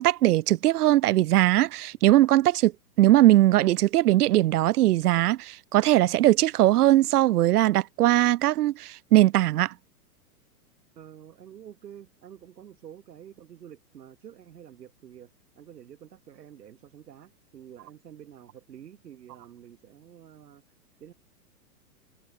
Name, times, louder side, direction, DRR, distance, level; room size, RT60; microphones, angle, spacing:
voice 1, 0.0-2.7 3.0-9.7, right 15 dB, 70° right, 0.6 m, -20 dB
voice 2, 10.9-20.6 21.0-21.1, right 9 dB, 90° right, 3.3 m, -48 dB
hypercardioid pair, 170°, 47 cm